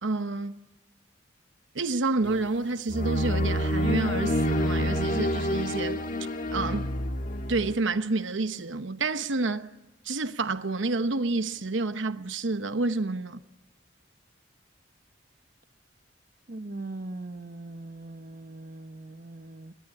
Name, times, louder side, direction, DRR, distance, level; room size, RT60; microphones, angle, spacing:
voice 1, 0.0-0.6 1.7-6.0 6.5-6.9 7.5-9.7 10.0-13.4, right 3 dB, 80° right, 0.9 m, -29 dB
sound 1, 2.2-2.5 2.9-7.7, equal, 45° left, 1.5 m, -28 dB
voice 2, 16.5-19.7, right 2 dB, 45° right, 1.0 m, -40 dB
25.0 x 20.5 x 9.8 m
head